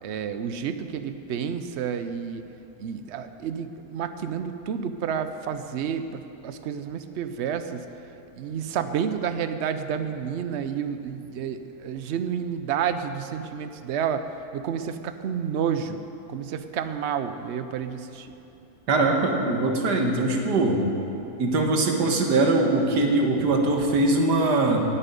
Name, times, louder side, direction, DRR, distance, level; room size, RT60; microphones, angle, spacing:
voice 1, 0.0-2.4 2.8-7.9 8.3-16.0 16.3-18.3, right 7 dB, 65° right, 10 dB, 0.7 m, -30 dB
voice 2, 18.9-20.8 21.4-24.9, right 2 dB, 90° right, 2 dB, 1.9 m, -22 dB
18.0 x 8.5 x 5.3 m, 2.8 s
omnidirectional pair, 1.7 m